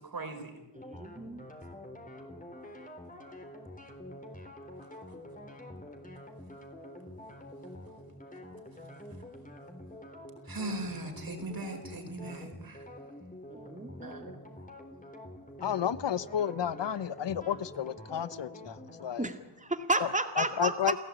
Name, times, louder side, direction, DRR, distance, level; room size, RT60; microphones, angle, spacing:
voice 1, 0.0-0.6 10.5-12.8 14.0-14.2, right 2 dB, 55° right, 5 dB, 5.1 m, -39 dB
sound 1, 0.7-19.0, left 1 dB, 20° left, 3.9 m, -47 dB
voice 2, 0.7-1.4 13.5-14.3 19.2-20.9, right 2 dB, 15° right, 6 dB, 2.2 m, -32 dB
voice 3, 15.6-19.3 20.0-20.1 20.4-21.0, left 9 dB, 90° left, 16 dB, 0.9 m, -32 dB
29.0 x 16.5 x 8.8 m, 0.97 s
wide cardioid pair, 90°, 41 cm